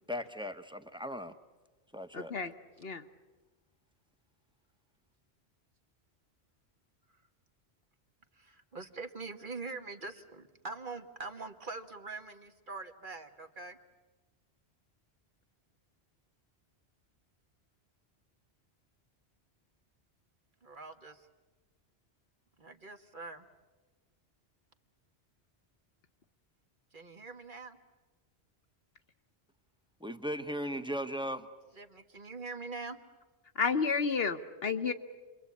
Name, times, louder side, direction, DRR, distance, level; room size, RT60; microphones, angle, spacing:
voice 1, 0.1-1.3 1.9-2.3 30.0-31.5, equal, 5° right, 8 dB, 1.1 m, -37 dB
voice 2, 2.1-2.5 2.8-3.0 33.5-34.9, left 5 dB, 60° left, 7 dB, 1.3 m, -31 dB
voice 3, 8.3-13.8 20.6-21.3 22.6-23.4 26.9-27.8 31.7-33.0, right 3 dB, 50° right, 6 dB, 1.6 m, -44 dB
29.5 x 23.0 x 8.5 m, 1.2 s
omnidirectional pair, 1.1 m